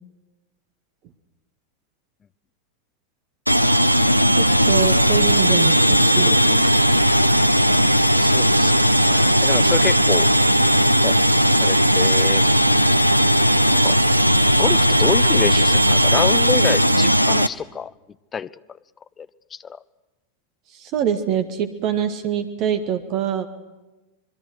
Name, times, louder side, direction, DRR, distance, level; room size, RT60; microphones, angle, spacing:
sound 1, 3.5-17.5, equal, 90° right, 0.7 m, -17 dB
voice 1, 4.4-6.7 20.7-23.5, right 9 dB, 40° right, 10 dB, 1.8 m, -25 dB
voice 2, 8.2-8.7 9.0-10.3 11.0-11.2 11.6-12.4 13.6-14.0 14.5-17.9 18.3-18.5 19.2-19.8, left 7 dB, 20° left, 17 dB, 0.7 m, -27 dB
26.5 x 22.0 x 6.2 m, 1.1 s
figure-of-eight pair, 90°, 0 cm